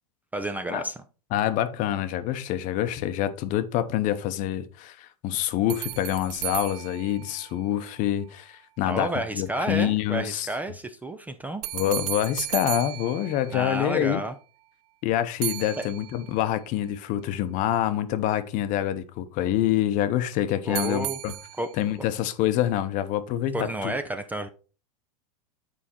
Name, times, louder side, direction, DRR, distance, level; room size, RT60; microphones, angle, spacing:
voice 1, 0.3-1.0 8.8-11.6 13.5-14.3 20.6-21.2 21.6-21.7 23.5-24.5, right 1 dB, 10° right, 0.5 m, -30 dB
voice 2, 1.3-10.5 11.7-14.2 15.0-21.3 21.8-23.9, left 12 dB, 40° left, 0.8 m, -26 dB
sound 1, 5.7-8.1 11.6-14.1 15.4-16.6 20.7-22.0, right 18 dB, 75° right, 0.4 m, -35 dB
7.3 x 5.0 x 4.3 m
supercardioid pair, 130°, 20 cm